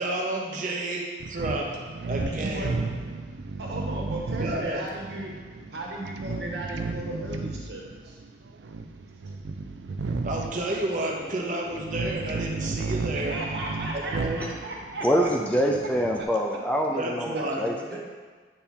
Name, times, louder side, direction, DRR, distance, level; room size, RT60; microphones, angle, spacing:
voice 1, 0.0-2.7 4.4-4.8 10.2-13.4 13.9-14.4 17.0-17.7, right 1 dB, 45° right, -1 dB, 0.9 m, -31 dB
sound 1, 1.2-16.2, right 3 dB, 85° right, 0.4 m, -34 dB
voice 2, 2.3-2.9 3.6-5.3 5.7-8.2 13.1-15.3 16.2-16.3 17.3-17.4 17.9-18.0, right 1 dB, 70° right, -3 dB, 1.4 m, -36 dB
voice 3, 15.0-18.0, equal, 5° left, 0 dB, 0.4 m, -25 dB
8.5 x 3.5 x 4.4 m, 1.5 s
head